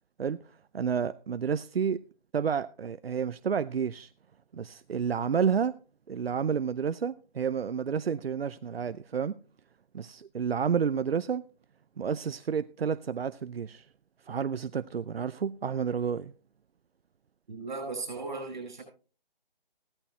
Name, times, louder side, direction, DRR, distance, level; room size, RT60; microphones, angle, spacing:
voice 1, 0.7-2.0 2.3-4.1 4.5-5.7 6.1-9.4 9.9-11.4 12.0-13.9 14.3-16.3, right 7 dB, 90° right, 0.6 m, -30 dB
voice 2, 17.5-18.8, right 3 dB, 50° right, 7.7 m, -36 dB
16.5 x 13.0 x 2.9 m
hypercardioid pair, 165°, 29 cm